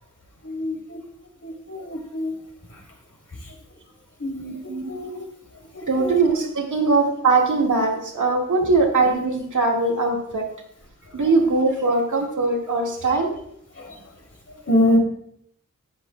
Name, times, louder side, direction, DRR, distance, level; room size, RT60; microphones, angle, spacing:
voice 1, 0.4-1.0 1.4-2.3 4.2-4.5 4.9-5.3 5.7-6.2 6.8-6.9 13.8-13.9 14.7-15.0, left 1 dB, 50° left, 0 dB, 2.9 m, -24 dB
voice 2, 5.9-10.5 11.1-13.3, right 3 dB, 70° right, 1 dB, 1.9 m, -21 dB
12.0 x 8.4 x 2.2 m, 0.70 s
cardioid pair, 55°, 32 cm